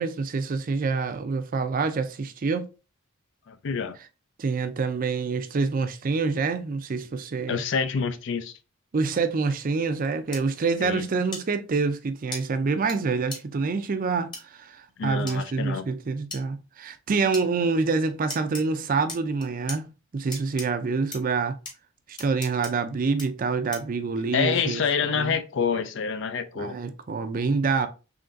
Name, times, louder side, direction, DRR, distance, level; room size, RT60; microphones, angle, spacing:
voice 1, 0.0-2.7 4.4-7.6 8.9-21.6 22.1-25.4 26.6-27.9, right 4 dB, 40° right, 0.4 m, -27 dB
voice 2, 3.5-4.0 7.5-8.5 10.8-11.1 15.0-15.8 24.3-26.8, left 6 dB, 60° left, 0.4 m, -27 dB
sound 1, 10.3-10.4 11.3-11.4 12.3-12.4 12.9-13.0 13.3-13.4 14.3-14.4 15.3-15.4 16.3-16.4 17.3-17.5 18.3-18.6 19.1-19.8 20.3-20.7 21.1-21.2 21.7-21.8 22.2-22.7 23.2-23.3 23.7-23.9, left 2 dB, 20° left, 1.1 m, -36 dB
3.8 x 3.3 x 2.5 m
head